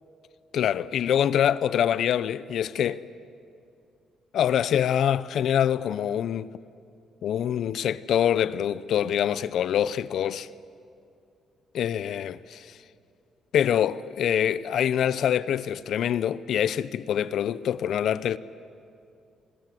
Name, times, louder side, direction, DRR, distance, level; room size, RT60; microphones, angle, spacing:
voice 1, 0.5-3.0 4.3-6.5 7.2-10.5 11.7-12.8 13.5-18.4, left 9 dB, 70° left, 0.7 m, -25 dB
28.0 x 21.5 x 7.7 m
cardioid pair, 90°, 0 cm